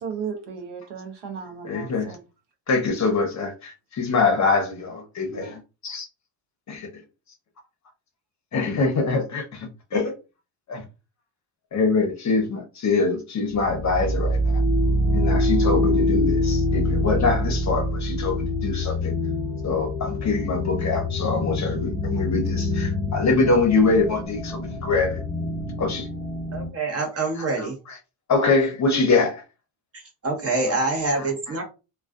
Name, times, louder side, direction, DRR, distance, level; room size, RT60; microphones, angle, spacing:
voice 1, 0.0-2.2, right 6 dB, 55° right, 0.7 m, -35 dB
voice 2, 1.6-2.1 2.7-6.1 6.7-6.9 8.5-10.1 10.7-10.8 11.7-14.6 15.1-19.1 19.6-25.2 25.8-26.1 27.3-28.0 28.3-29.4 31.1-31.3, left 3 dB, 35° left, 0.8 m, -24 dB
sound 1, 13.5-26.7, left 1 dB, 5° right, 0.7 m, -25 dB
voice 3, 26.5-27.8 29.9-31.6, right 3 dB, 30° right, 0.9 m, -26 dB
2.3 x 2.3 x 2.4 m
cardioid pair, 105°, 49 cm